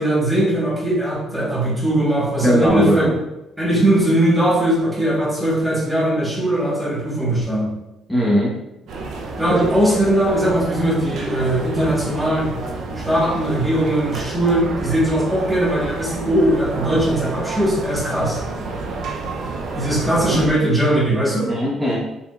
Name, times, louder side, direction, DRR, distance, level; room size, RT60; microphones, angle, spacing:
voice 1, 0.0-3.1 3.6-7.7 9.4-12.5 13.0-18.4 19.7-21.5, right 1 dB, 15° right, -5 dB, 1.4 m, -19 dB
voice 2, 2.4-3.1 8.1-8.5 9.5-9.6 20.3-20.4 21.5-22.0, equal, 5° left, -7 dB, 1.3 m, -18 dB
sound 1, 8.9-20.5, right 3 dB, 70° right, 0.6 m, -29 dB
4.9 x 3.5 x 2.4 m, 0.92 s
supercardioid pair, 75°, 0 cm